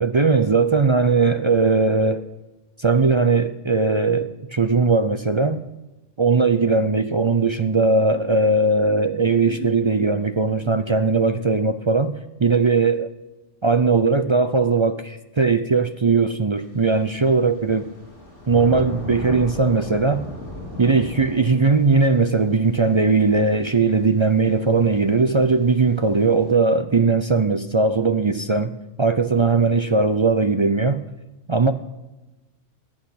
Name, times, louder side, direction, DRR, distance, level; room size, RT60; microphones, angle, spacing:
voice 1, 0.0-2.2 2.8-5.6 6.2-13.1 13.6-17.9 18.5-20.2 20.8-31.0 31.5-31.7, right 4 dB, 45° right, 9 dB, 0.4 m, -19 dB
Thunder / Rain, 16.6-26.5, left 1 dB, 65° left, 4.2 m, -38 dB
21.0 x 8.6 x 5.8 m, 1.1 s
omnidirectional pair, 1.3 m